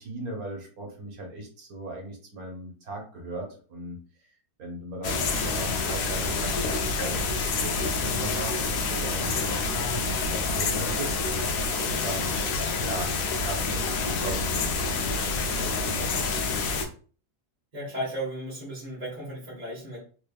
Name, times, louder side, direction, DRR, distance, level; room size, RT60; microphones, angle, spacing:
voice 1, 0.0-4.0 4.6-11.7 12.0-12.5 12.8-14.5 14.8-15.1 15.5-16.1, right 2 dB, 65° right, 1 dB, 1.5 m, -38 dB
sound 1, 5.0-16.8, left 4 dB, 70° left, 1.0 m, -27 dB
voice 2, 17.7-20.0, right 1 dB, 25° right, -7 dB, 1.3 m, -35 dB
3.5 x 3.4 x 2.3 m, 0.40 s
omnidirectional pair, 1.7 m